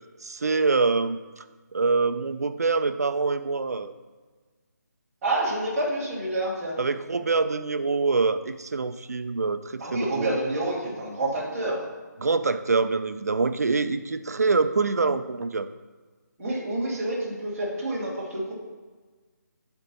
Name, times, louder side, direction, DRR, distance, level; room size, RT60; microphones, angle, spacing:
voice 1, 0.2-1.4 1.7-3.9 6.8-10.4 12.2-15.7, right 4 dB, 55° right, 10 dB, 0.4 m, -25 dB
voice 2, 5.2-6.8 9.8-11.9 16.4-18.5, right 1 dB, 5° right, -13 dB, 0.7 m, -28 dB
8.3 x 4.4 x 4.0 m, 1.4 s
hypercardioid pair, 180°, 10 cm